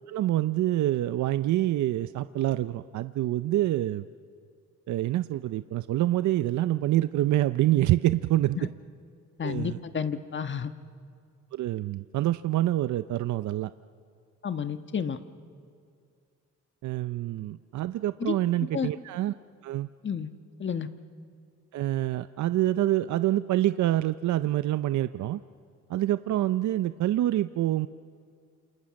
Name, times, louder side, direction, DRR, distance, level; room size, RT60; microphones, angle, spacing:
voice 1, 0.1-4.1 4.9-8.6 9.4-9.8 11.5-13.7 16.8-19.3 19.6-19.9 21.7-25.4 25.9-27.9, right 14 dB, 70° right, 13 dB, 0.6 m, -26 dB
voice 2, 9.4-10.7 14.4-15.2 18.2-18.3 18.7-18.9 20.0-20.3 20.6-20.9, left 7 dB, 40° left, 9 dB, 1.4 m, -30 dB
28.0 x 28.0 x 6.4 m, 2.2 s
cardioid pair, 90°, 30 cm